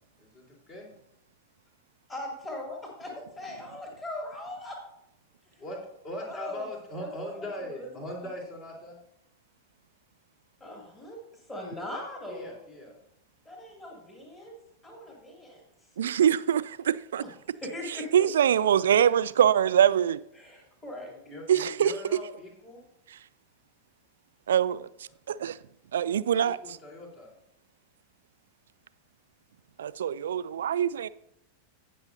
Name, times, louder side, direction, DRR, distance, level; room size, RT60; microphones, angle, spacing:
voice 1, 0.2-0.9 5.6-9.0 12.3-12.9 20.9-22.8 26.4-27.3, left 1 dB, 40° left, 3.6 m, -40 dB
voice 2, 2.1-4.8 6.2-6.7 7.0-7.1 7.4-7.5 7.8-7.9 10.6-11.2 11.5-12.5 13.4-14.6 14.8-15.6 17.6-18.3 20.4-21.1, left 1 dB, 15° left, 2.3 m, -40 dB
voice 3, 16.0-17.2 17.9-20.2 21.5-21.9 23.1-23.2 24.5-25.6 25.9-26.8 29.8-31.1, right 9 dB, 65° right, 0.3 m, -24 dB
17.5 x 6.1 x 2.6 m
figure-of-eight pair, 90°, 0 cm